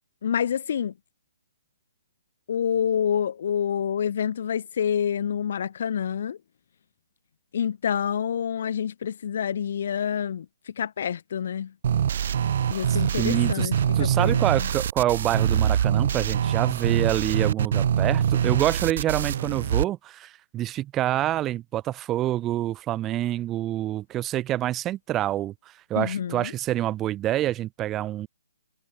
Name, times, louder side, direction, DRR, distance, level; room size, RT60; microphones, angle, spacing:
voice 1, 0.2-0.9 2.5-6.4 7.5-11.7 12.7-14.7 26.0-26.5, left 8 dB, 55° left, 2.5 m, -27 dB
sound 1, 11.8-19.8, right 9 dB, 50° right, 0.8 m, -24 dB
voice 2, 12.9-13.7 13.9-28.3, right 13 dB, 15° right, 1.6 m, -27 dB
hypercardioid pair, 155°, 0 cm